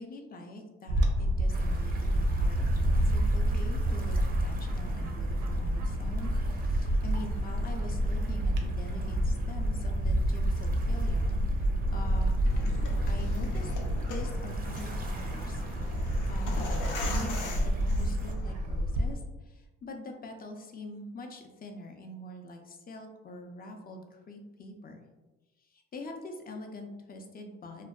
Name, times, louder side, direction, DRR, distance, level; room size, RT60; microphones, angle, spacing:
voice 1, 0.0-12.4 13.1-15.6 16.3-25.0 25.6-27.9, left 2 dB, 30° left, 4 dB, 0.4 m, -44 dB
Bird / Wind, 0.9-19.1, equal, 85° right, 0.5 m, -29 dB
sound 1, 1.5-18.3, right 3 dB, 30° right, 0.4 m, -40 dB
sound 2, 12.4-18.5, left 2 dB, 85° left, 0.6 m, -41 dB
2.5 x 2.1 x 2.3 m, 1.1 s
cardioid pair, 90°, 30 cm